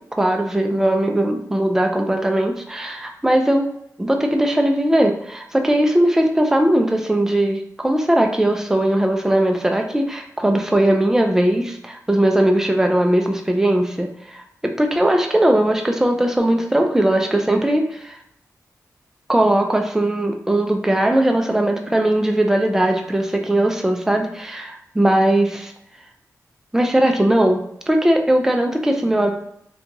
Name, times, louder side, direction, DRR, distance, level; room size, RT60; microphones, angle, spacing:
voice 1, 0.2-3.7 4.0-18.2 19.3-25.7 26.7-29.3, right 1 dB, 10° right, 3 dB, 0.3 m, -19 dB
2.9 x 2.2 x 2.6 m, 0.76 s
wide cardioid pair, 95°, 6 cm